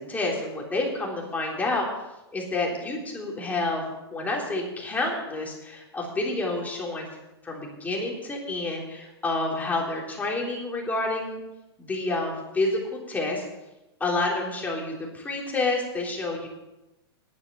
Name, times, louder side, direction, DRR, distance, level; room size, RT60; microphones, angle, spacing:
voice 1, 0.0-1.9 2.3-3.8 4.1-7.1 7.4-11.4 11.8-13.4 14.0-16.5, left 2 dB, 10° left, -2 dB, 3.5 m, -29 dB
10.5 x 9.6 x 6.9 m, 0.97 s
hypercardioid pair, 120°, 14 cm